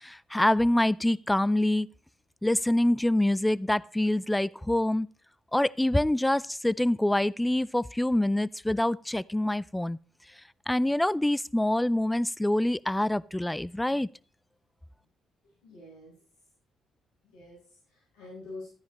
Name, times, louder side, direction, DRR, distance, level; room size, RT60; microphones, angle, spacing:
voice 1, 0.0-1.9 2.4-5.1 5.5-10.0 10.7-14.1, left 1 dB, 10° left, 0.4 m, -25 dB
voice 2, 15.6-16.1 17.2-18.7, left 2 dB, 90° left, 6.9 m, -46 dB
14.0 x 9.8 x 3.1 m
supercardioid pair, 60°, 0 cm